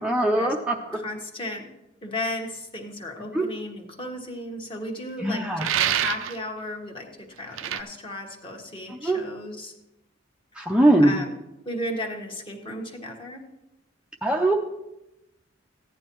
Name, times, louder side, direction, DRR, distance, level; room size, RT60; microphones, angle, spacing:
voice 1, 0.0-1.0 3.3-3.5 5.2-5.7 8.9-9.2 10.5-11.2 14.2-14.5, right 1 dB, 5° right, 0 dB, 0.5 m, -21 dB
voice 2, 0.9-1.7 2.0-5.5 5.7-9.7 11.0-11.3 11.6-13.4, left 1 dB, 25° left, 2 dB, 1.3 m, -34 dB
sound 1, 5.6-6.4 7.6-7.8, right 10 dB, 80° right, 0.4 m, -25 dB
15.0 x 9.7 x 3.0 m, 0.93 s
head